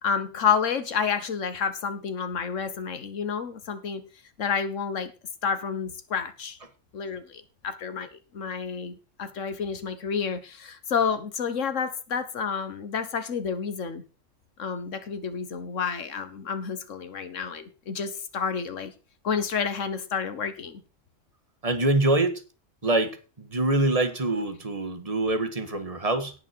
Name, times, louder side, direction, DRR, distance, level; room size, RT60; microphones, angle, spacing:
voice 1, 0.0-4.0 4.4-5.1 5.4-6.6 6.9-14.0 14.6-18.9 19.2-20.8, left 6 dB, 75° left, 10 dB, 1.6 m, -30 dB
voice 2, 21.6-22.4 22.8-26.3, right 2 dB, 30° right, 9 dB, 1.6 m, -25 dB
17.5 x 6.1 x 4.6 m, 0.33 s
omnidirectional pair, 1.3 m